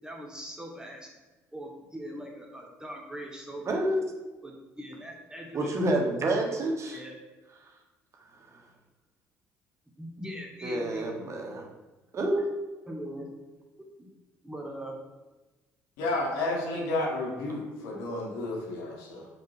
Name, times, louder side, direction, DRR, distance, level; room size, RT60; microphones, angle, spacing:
voice 1, 0.0-1.1 1.5-3.7 4.4-5.7 6.9-7.2 10.0-11.1 12.9-13.3 14.0-14.1 14.4-15.0, equal, 10° right, 0 dB, 2.2 m, -41 dB
voice 2, 3.6-4.1 5.5-7.0 8.4-8.6 10.6-11.7 12.1-12.8, right 1 dB, 45° right, 2 dB, 1.6 m, -29 dB
voice 3, 16.0-19.3, left 2 dB, 80° left, -1 dB, 1.9 m, -31 dB
5.4 x 5.2 x 5.7 m, 1.2 s
hypercardioid pair, 60°, 7 cm